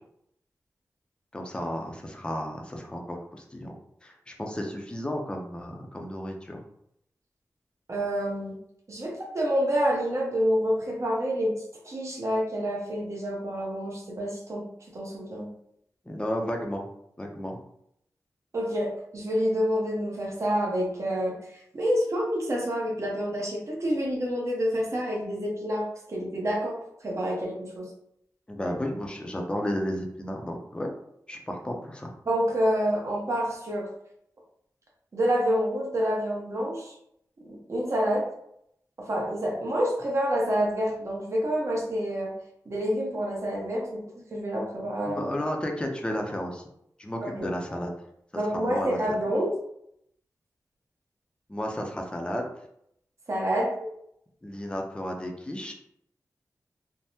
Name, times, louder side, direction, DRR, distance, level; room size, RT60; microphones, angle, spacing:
voice 1, 1.3-3.7 4.0-6.6 16.1-16.9 17.2-17.6 28.5-30.9 31.3-32.1 45.1-46.6 47.0-47.9 48.5-49.0 51.5-52.5 54.4-55.7, equal, 15° left, 1 dB, 0.5 m, -33 dB
voice 2, 7.9-8.6 8.9-11.5 11.8-14.6 14.9-15.5 18.5-26.7 27.0-27.9 32.3-33.9 35.1-36.9 37.5-38.2 39.0-42.3 42.7-44.0 44.3-45.2 47.2-47.5 48.3-49.6 53.3-53.7, equal, 50° right, -3 dB, 0.9 m, -28 dB
3.4 x 2.1 x 2.7 m, 0.74 s
wide cardioid pair, 85°, 6 cm